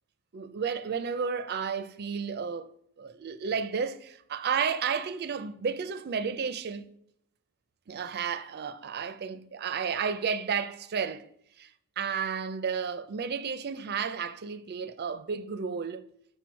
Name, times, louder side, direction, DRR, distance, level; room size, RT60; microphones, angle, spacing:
voice 1, 0.3-2.7 3.0-6.8 7.9-11.3 11.6-16.0, right 6 dB, 45° right, 0.4 m, -32 dB
6.1 x 4.4 x 4.5 m
head